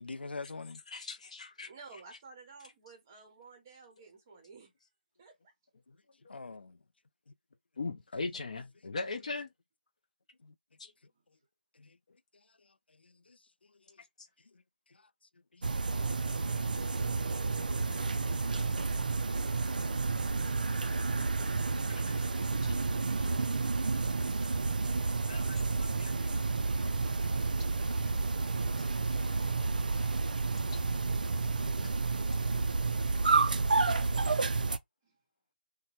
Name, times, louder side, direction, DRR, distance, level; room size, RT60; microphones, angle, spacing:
voice 1, 0.0-0.8 5.9-6.0 6.3-6.8 7.3-7.4 10.4-10.5 11.8-12.0 12.9-13.4 13.9-14.0 14.5-14.6 14.9-15.1 15.5-15.9 21.4-21.5 24.4-24.7 25.0-25.1 25.4-25.5 27.8-28.1 29.3-29.6 31.6-32.0, left 3 dB, 85° left, 0.4 m, -48 dB
voice 2, 0.9-1.7 6.2-6.3 7.8-9.5 10.8-10.9 22.0-22.1 22.6-22.7 25.3-25.6 26.0-26.1 28.5-28.6, left 3 dB, 40° left, 0.6 m, -39 dB
voice 3, 1.6-4.7 5.2-5.5 11.1-11.2 15.9-19.7 35.0-35.2, right 4 dB, 15° right, 0.7 m, -56 dB
sound 1, 15.6-34.8, right 3 dB, 55° right, 0.4 m, -30 dB
2.8 x 2.2 x 2.9 m
figure-of-eight pair, 170°, 5 cm